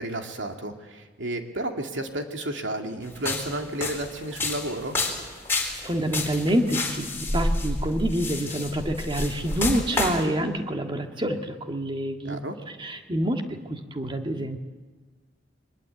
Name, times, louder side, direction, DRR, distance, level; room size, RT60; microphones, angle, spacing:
voice 1, 0.0-5.0 12.2-12.6, right 1 dB, 80° right, 3 dB, 2.4 m, -32 dB
sound 1, 3.1-10.2, left 2 dB, 15° left, 4.2 m, -29 dB
voice 2, 5.6-12.4 12.8-14.6, right 1 dB, 25° right, 4 dB, 1.7 m, -27 dB
23.0 x 21.0 x 8.3 m, 1.4 s
head